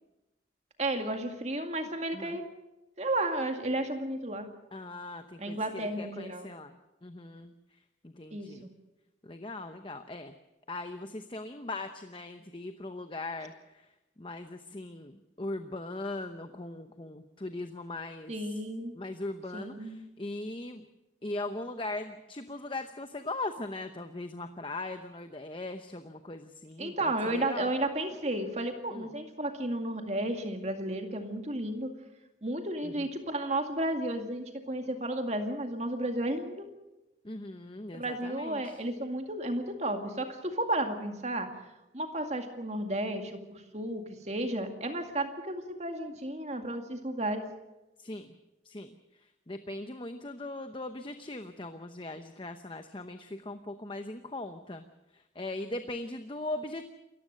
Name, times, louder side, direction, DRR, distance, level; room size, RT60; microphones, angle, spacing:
voice 1, 0.8-2.4 3.0-4.5 5.4-6.5 8.3-8.7 18.3-18.9 19.5-20.0 26.8-31.9 32.4-36.7 37.9-41.5 41.9-47.5, right 1 dB, 35° right, 5 dB, 2.2 m, -33 dB
voice 2, 4.7-6.8 7.0-7.5 8.0-8.7 9.2-10.4 10.7-13.9 14.2-18.3 18.9-20.9 21.2-27.7 28.9-29.1 32.8-33.0 37.2-38.8 48.0-48.3 48.6-48.9 49.5-54.8 55.1-56.9, left 2 dB, 25° left, 8 dB, 0.8 m, -39 dB
27.5 x 15.0 x 6.6 m, 1.0 s
head